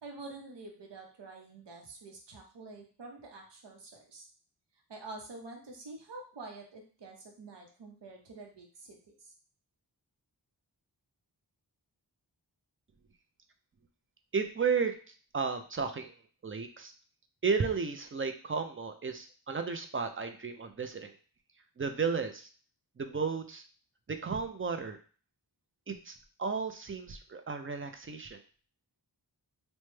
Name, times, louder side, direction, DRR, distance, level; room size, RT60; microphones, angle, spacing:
voice 1, 0.0-4.2 4.9-9.3, right 3 dB, 80° right, 1 dB, 0.8 m, -47 dB
voice 2, 14.3-16.1 16.4-16.9 17.4-21.1 21.8-22.5 23.0-23.6 24.1-25.0 25.9-28.4, right 5 dB, 30° right, 7 dB, 0.4 m, -33 dB
3.0 x 2.1 x 3.1 m, 0.40 s
wide cardioid pair, 75°, 41 cm